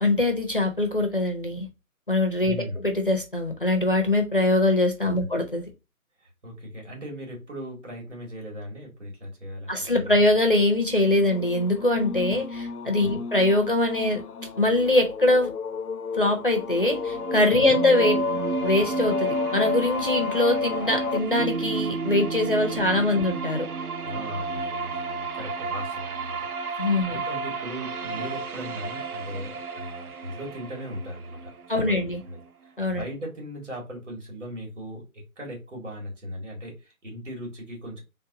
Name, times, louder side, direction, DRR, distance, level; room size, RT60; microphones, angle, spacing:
voice 1, 0.0-1.7 2.1-5.7 9.7-14.2 14.6-15.5 16.1-18.2 18.6-23.7 26.8-27.2 31.7-32.2 32.8-33.0, left 2 dB, 40° left, 0.5 m, -23 dB
voice 2, 2.4-2.8 5.2-5.3 6.2-10.2 13.0-13.2 17.5-17.8 22.7-22.8 23.1-23.2 24.0-26.5 26.7-32.0 32.3-38.0, equal, 55° right, 2.2 m, -38 dB
sound 1, 10.9-21.2, left 5 dB, 90° left, 0.6 m, -31 dB
sound 2, 16.5-32.5, right 5 dB, 80° right, 0.6 m, -34 dB
Bass guitar, 21.4-25.8, right 4 dB, 35° right, 1.9 m, -35 dB
3.9 x 2.2 x 3.9 m
figure-of-eight pair, 160°, 44 cm